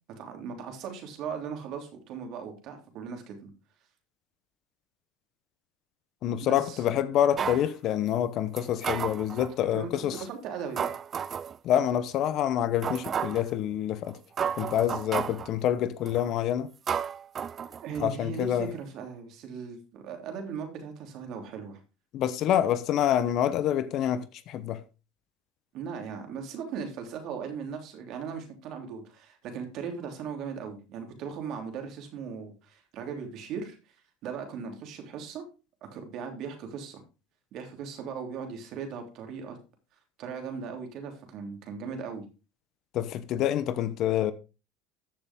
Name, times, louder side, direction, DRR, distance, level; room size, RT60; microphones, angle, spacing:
voice 1, 0.2-3.5 6.4-6.8 9.7-10.9 17.7-21.8 25.7-34.0 34.2-35.4 35.8-37.0 37.5-39.6 40.2-42.2, right 6 dB, 55° right, 3.2 m, -38 dB
voice 2, 6.2-10.2 11.6-14.2 14.6-16.7 18.0-18.7 22.1-24.8 42.9-44.3, left 11 dB, 55° left, 1.0 m, -27 dB
sound 1, 7.4-7.7 8.6-9.5 10.1-10.3 10.8-11.6 12.1-12.2 12.8-13.5 14.1-14.2 14.4-15.5 16.1-16.3 16.9-18.1 18.4-18.5, right 7 dB, 35° right, 0.5 m, -32 dB
13.5 x 7.0 x 3.7 m
hypercardioid pair, 85°, 0 cm